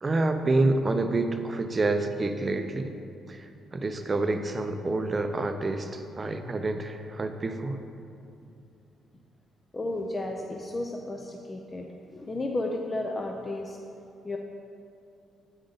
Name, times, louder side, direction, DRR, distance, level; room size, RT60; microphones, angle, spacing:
voice 1, 0.0-2.9 3.3-7.8, right 2 dB, 30° right, 7 dB, 0.5 m, -28 dB
voice 2, 9.7-13.8 14.2-14.4, left 2 dB, 25° left, 2 dB, 0.5 m, -33 dB
8.8 x 5.1 x 4.0 m, 2.6 s
cardioid pair, 90°, 0 cm